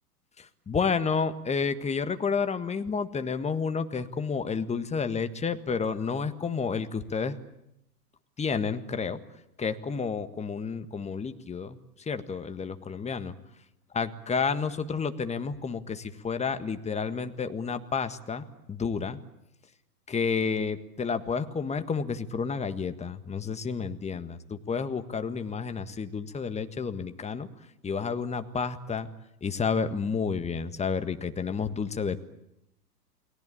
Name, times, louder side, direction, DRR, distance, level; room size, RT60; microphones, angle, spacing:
voice 1, 0.4-7.4 8.4-9.2 9.6-11.8 12.1-13.3 13.9-19.2 20.1-27.5 27.8-29.1 29.4-32.2, left 5 dB, 15° left, 10 dB, 1.6 m, -30 dB
29.5 x 20.0 x 8.7 m, 0.85 s
figure-of-eight pair, 100°, 48 cm